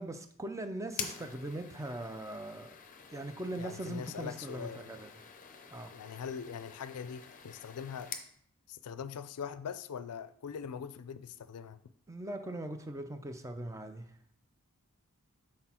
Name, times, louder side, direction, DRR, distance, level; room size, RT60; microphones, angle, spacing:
voice 1, 0.0-2.7 3.1-5.1 5.7-5.9 12.1-14.2, right 1 dB, 15° right, 7 dB, 0.4 m, -40 dB
sound 1, 0.9-8.3, left 7 dB, 35° left, 0.6 m, -47 dB
voice 2, 3.6-5.0 5.9-8.1 8.7-11.8, left 7 dB, 85° left, 14 dB, 0.4 m, -42 dB
6.0 x 4.3 x 4.3 m, 0.63 s
head